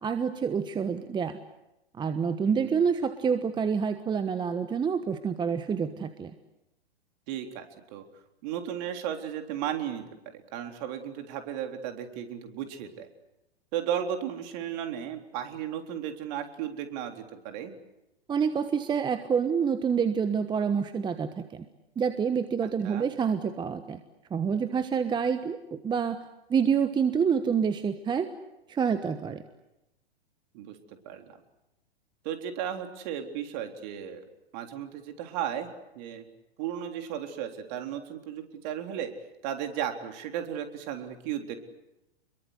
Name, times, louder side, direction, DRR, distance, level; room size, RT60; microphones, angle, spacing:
voice 1, 0.0-1.4 2.0-6.3 18.3-21.6 22.0-24.0 24.3-26.2 26.5-28.3 28.7-29.4, right 6 dB, 15° right, 10 dB, 1.2 m, -27 dB
voice 2, 2.5-2.8 7.3-7.7 7.9-8.0 8.4-10.0 10.5-13.1 13.7-17.7 22.8-23.1 30.5-31.4 32.2-34.2 34.5-35.7 36.0-36.3 36.6-39.1 39.4-41.6, right 9 dB, 45° right, 5 dB, 3.8 m, -35 dB
29.5 x 22.5 x 8.1 m, 0.92 s
figure-of-eight pair, 110°, 31 cm